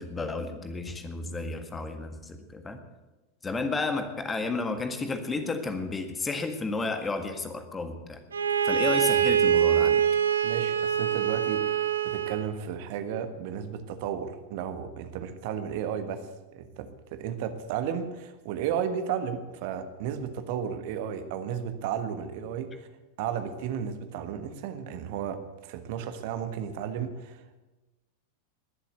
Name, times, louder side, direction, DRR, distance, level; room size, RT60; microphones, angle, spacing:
voice 1, 0.0-2.8 3.4-8.2 8.6-10.0, left 3 dB, 15° left, 7 dB, 1.7 m, -32 dB
Bowed string instrument, 8.3-12.5, right 9 dB, 70° right, 0.8 m, -24 dB
voice 2, 10.4-22.9 23.2-27.6, right 8 dB, 50° right, 9 dB, 1.4 m, -34 dB
21.0 x 7.5 x 8.1 m, 1.1 s
figure-of-eight pair, 90°, 0 cm